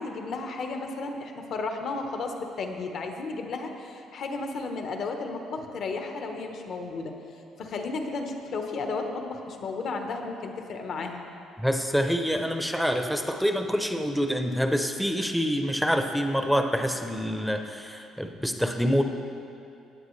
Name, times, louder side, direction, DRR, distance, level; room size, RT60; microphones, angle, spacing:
voice 1, 0.0-7.1 7.6-11.2, left 3 dB, 55° left, 4 dB, 1.1 m, -33 dB
voice 2, 11.6-19.0, equal, ahead, 5 dB, 0.7 m, -26 dB
16.5 x 9.1 x 3.2 m, 2.6 s
cardioid pair, 120°, 0 cm